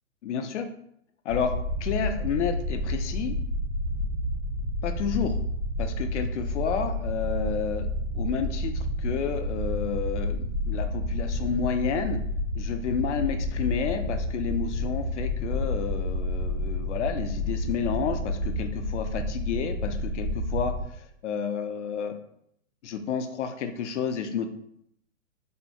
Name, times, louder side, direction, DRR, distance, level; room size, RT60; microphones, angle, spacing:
voice 1, 0.2-0.7 1.3-1.5 1.8-3.3 4.8-5.3 5.8-7.9 8.1-12.2 12.6-22.2 22.8-24.5, left 7 dB, 60° left, 7 dB, 0.5 m, -30 dB
sound 1, 1.3-20.8, left 1 dB, ahead, 0.5 m, -30 dB
3.5 x 2.2 x 2.8 m, 0.72 s
hypercardioid pair, 130°, 41 cm